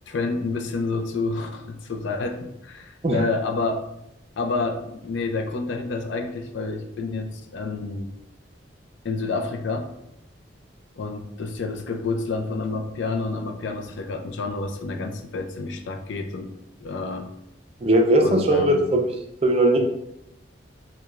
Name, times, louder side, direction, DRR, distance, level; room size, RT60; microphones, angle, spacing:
voice 1, 0.1-3.8 4.4-8.1 9.0-9.9 11.0-16.5 16.8-17.3 18.2-18.9, left 3 dB, 70° left, 4 dB, 0.4 m, -29 dB
voice 2, 17.8-19.0 19.4-19.8, right 1 dB, 30° right, 3 dB, 0.4 m, -18 dB
4.6 x 2.2 x 2.4 m, 0.81 s
head